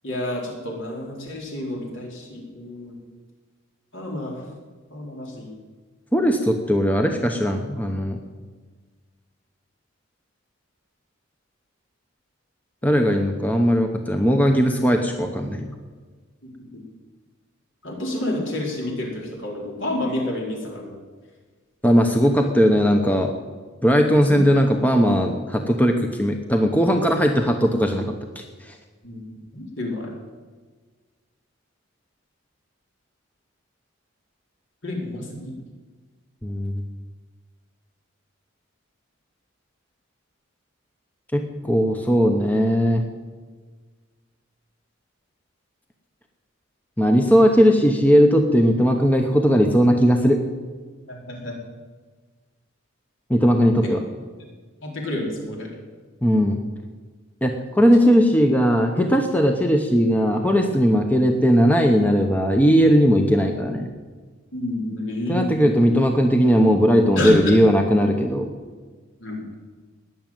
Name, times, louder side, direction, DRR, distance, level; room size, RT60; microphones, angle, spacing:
voice 1, 0.0-2.9 3.9-4.4 4.9-5.5 16.4-16.5 17.8-21.0 24.3-24.4 29.0-29.2 29.5-30.1 34.8-35.5 51.1-51.5 53.8-53.9 54.8-55.7 64.5-65.8 67.2-67.6 69.2-69.4, left 1 dB, 65° left, -1 dB, 4.4 m, -29 dB
voice 2, 6.1-8.2 12.8-15.7 21.8-23.3 23.8-28.1 28.7-28.8 36.4-36.7 41.3-43.0 47.0-50.4 53.3-54.0 56.2-56.6 57.4-63.9 65.3-68.5, equal, 10° left, 4 dB, 1.0 m, -18 dB
20.0 x 7.4 x 9.0 m, 1.4 s
head